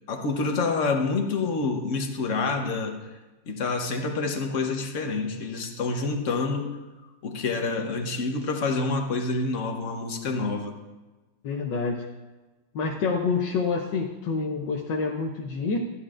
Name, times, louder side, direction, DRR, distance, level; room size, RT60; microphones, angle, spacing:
voice 1, 0.1-3.0 3.5-6.8 7.2-10.8, left 3 dB, 50° left, 4 dB, 1.1 m, -27 dB
voice 2, 11.4-12.1 12.7-15.8, left 4 dB, 75° left, 0 dB, 1.4 m, -27 dB
14.0 x 9.9 x 2.5 m, 1.2 s
omnidirectional pair, 2.0 m